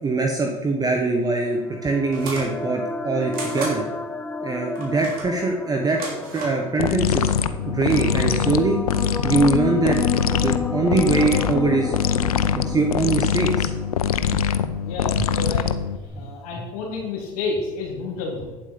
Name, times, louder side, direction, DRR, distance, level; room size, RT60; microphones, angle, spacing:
voice 1, 0.0-3.8 4.4-6.0 6.3-7.3 7.6-8.8 9.2-11.9 12.6-13.7 16.2-16.3, right 3 dB, 20° right, 2 dB, 1.2 m, -23 dB
sound 1, 1.0-15.2, left 4 dB, 10° left, 0.6 m, -32 dB
sound 2, 2.1-2.5 3.3-3.8 4.8-5.3 5.9-6.6, right 3 dB, 55° right, 3.3 m, -33 dB
sound 3, 6.8-16.1, left 8 dB, 90° left, 0.6 m, -23 dB
voice 2, 14.8-15.7 16.1-18.5, left 4 dB, 75° left, -3 dB, 2.4 m, -30 dB
8.9 x 7.7 x 5.4 m, 1.2 s
hypercardioid pair, 85°, 18 cm